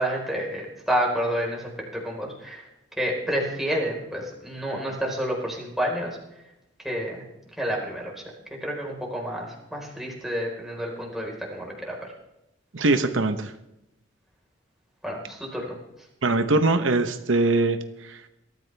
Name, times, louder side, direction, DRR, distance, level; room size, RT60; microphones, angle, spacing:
voice 1, 0.0-1.6 1.9-2.6 3.0-6.2 6.8-7.2 7.6-8.1 8.6-11.9 15.0-15.7, equal, ahead, -2 dB, 4.6 m, -29 dB
voice 2, 12.7-13.5 16.2-18.2, right 2 dB, 80° right, 8 dB, 1.1 m, -22 dB
21.5 x 14.0 x 3.5 m, 0.87 s
head